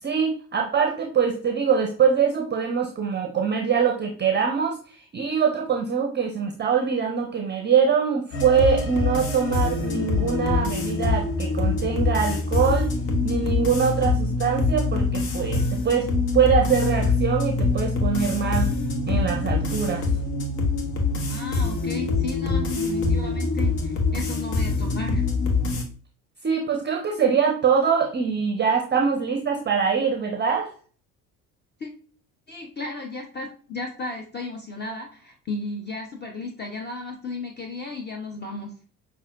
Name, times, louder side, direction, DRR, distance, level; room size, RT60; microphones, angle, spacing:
voice 1, 0.0-13.0 13.2-18.7 19.1-20.1 26.4-30.7, right 6 dB, 25° right, 3 dB, 0.6 m, -23 dB
sound 1, 8.3-25.8, left 3 dB, 60° left, 1.0 m, -24 dB
voice 2, 21.3-25.3 31.8-31.9 32.5-38.7, left 3 dB, 20° left, 2 dB, 0.7 m, -34 dB
5.5 x 2.5 x 2.5 m, 0.43 s
figure-of-eight pair, 55°, 46 cm